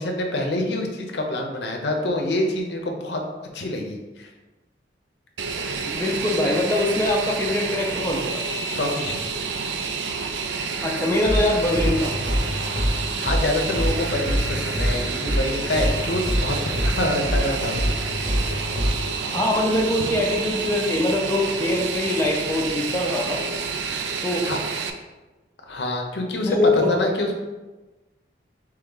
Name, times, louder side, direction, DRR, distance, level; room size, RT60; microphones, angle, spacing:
voice 1, 0.0-3.2 3.5-4.3 8.7-9.2 13.2-18.0 24.4-24.6 25.7-27.4, left 1 dB, 70° left, 3 dB, 0.6 m, -26 dB
Fixed-wing aircraft airplane, 5.4-24.9, right 5 dB, 80° right, 0.4 m, -29 dB
voice 2, 5.9-8.4 10.8-12.1 19.3-23.4 24.2-24.5 26.5-27.0, left 1 dB, 15° left, -2 dB, 0.4 m, -23 dB
sound 1, 11.2-19.0, equal, 15° right, 0.8 m, -25 dB
3.5 x 3.1 x 3.8 m, 1.2 s
head